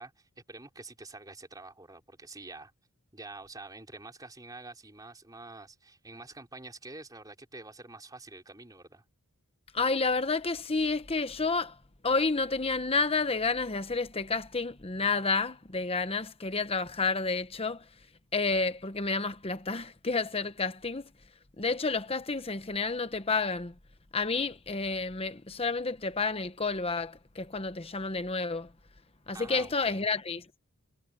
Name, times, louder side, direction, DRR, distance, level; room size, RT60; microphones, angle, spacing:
voice 1, 0.0-2.7 3.1-9.0 29.3-30.0, right 2 dB, 15° right, 4.0 m, -47 dB
voice 2, 9.7-11.7 12.0-17.8 18.3-21.1 21.6-23.7 24.1-28.7 29.3-30.4, left 4 dB, 25° left, 1.0 m, -30 dB
head